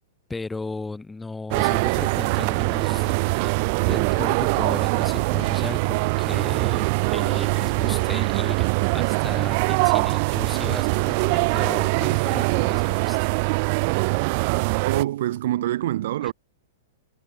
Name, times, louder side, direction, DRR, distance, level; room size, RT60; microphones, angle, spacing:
voice 1, 0.3-13.2 16.2-16.3, left 3 dB, 10° left, 1.1 m, -36 dB
sound 1, 1.5-15.0, right 30 dB, 50° right, 0.5 m, -23 dB
voice 2, 14.8-16.3, right 14 dB, 65° right, 0.9 m, -25 dB
hypercardioid pair, 125°, 0 cm